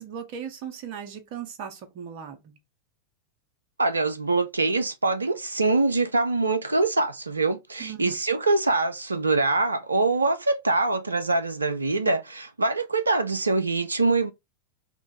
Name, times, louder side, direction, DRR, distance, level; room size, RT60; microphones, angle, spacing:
voice 1, 0.0-2.6 7.8-8.2, right 8 dB, 45° right, 0.8 m, -38 dB
voice 2, 3.8-14.3, right 3 dB, 80° right, 0.3 m, -24 dB
3.0 x 2.4 x 3.9 m
figure-of-eight pair, 90°, 0 cm